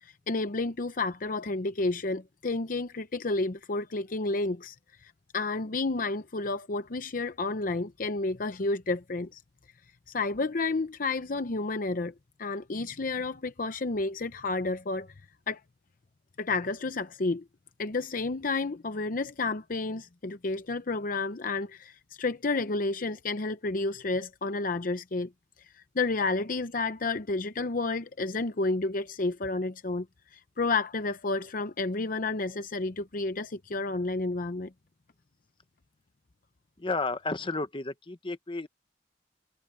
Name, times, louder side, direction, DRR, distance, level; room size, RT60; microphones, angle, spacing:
voice 1, 0.0-4.8 5.0-9.4 10.1-12.1 12.4-15.1 15.5-15.6 16.4-17.4 17.8-25.3 25.9-30.1 30.3-34.7, left 3 dB, 50° left, 0.7 m, -31 dB
voice 2, 36.8-38.7, left 3 dB, 30° left, 1.1 m, -32 dB
head